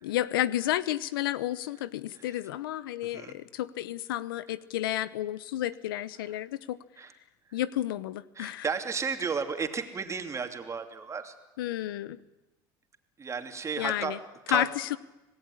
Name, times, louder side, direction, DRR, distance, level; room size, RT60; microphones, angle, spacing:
voice 1, 0.0-6.8 7.5-8.7 11.6-12.2 13.8-14.2 14.5-15.0, left 13 dB, 90° left, 18 dB, 0.9 m, -31 dB
voice 2, 8.3-11.3 13.2-14.2 14.5-14.7, right 5 dB, 25° right, 6 dB, 2.9 m, -33 dB
26.0 x 18.0 x 10.0 m, 1.0 s
supercardioid pair, 100°, 11 cm